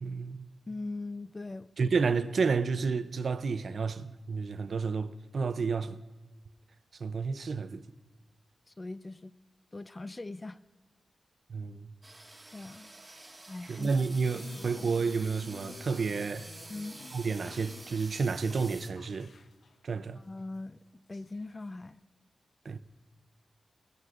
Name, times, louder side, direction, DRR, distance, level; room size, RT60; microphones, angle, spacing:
voice 1, 0.0-0.5 1.8-6.0 6.9-7.9 11.5-11.9 13.7-16.5 17.1-19.3 19.8-20.2 22.6-22.8, right 5 dB, 60° right, 0.5 m, -31 dB
voice 2, 0.7-1.7 8.7-9.3 9.7-10.6 12.5-12.9 13.5-13.9 16.7-17.0 20.1-20.8 21.1-22.0, left 2 dB, 25° left, 0.3 m, -40 dB
sound 1, 12.0-18.9, right 2 dB, 20° right, 1.3 m, -49 dB
sound 2, 14.2-20.9 21.1-21.6, left 4 dB, 65° left, 0.8 m, -51 dB
20.5 x 16.0 x 2.5 m
wide cardioid pair, 110°, 0 cm